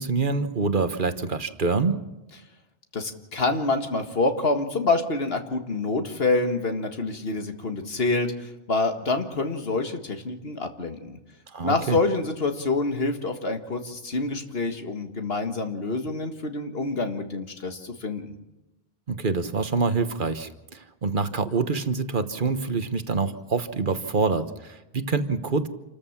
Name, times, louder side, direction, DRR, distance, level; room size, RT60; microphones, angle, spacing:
voice 1, 0.0-2.0 11.5-12.0 19.1-25.7, right 4 dB, 55° right, 10 dB, 1.3 m, -26 dB
voice 2, 2.9-11.2 11.6-18.4, left 3 dB, 70° left, 6 dB, 1.9 m, -27 dB
28.0 x 14.0 x 7.3 m, 1.0 s
omnidirectional pair, 1.0 m